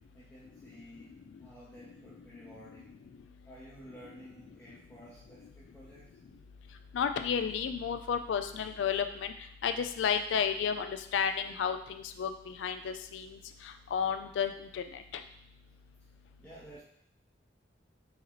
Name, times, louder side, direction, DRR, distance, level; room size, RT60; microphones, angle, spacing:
voice 1, 0.1-2.9 3.4-6.2 16.4-16.8, equal, 10° left, -9 dB, 0.6 m, -53 dB
voice 2, 6.9-9.3 9.6-12.3 12.6-13.3 13.9-14.9, left 7 dB, 80° left, 8 dB, 0.3 m, -32 dB
4.8 x 2.9 x 2.8 m, 0.68 s
head